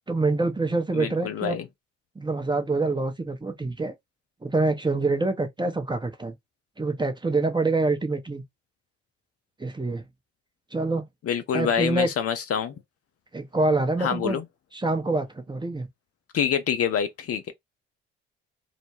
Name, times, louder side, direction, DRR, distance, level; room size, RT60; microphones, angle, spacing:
voice 1, 0.1-1.6 2.2-3.9 4.4-6.3 6.8-8.4 9.6-10.0 10.7-11.0 11.5-12.1 13.3-14.4 14.7-15.9, right 3 dB, 15° right, 0.7 m, -26 dB
voice 2, 0.9-1.6 11.3-12.7 14.0-14.4 16.3-17.5, left 8 dB, 45° left, 0.6 m, -26 dB
2.4 x 2.1 x 3.1 m
hypercardioid pair, 50°, 33 cm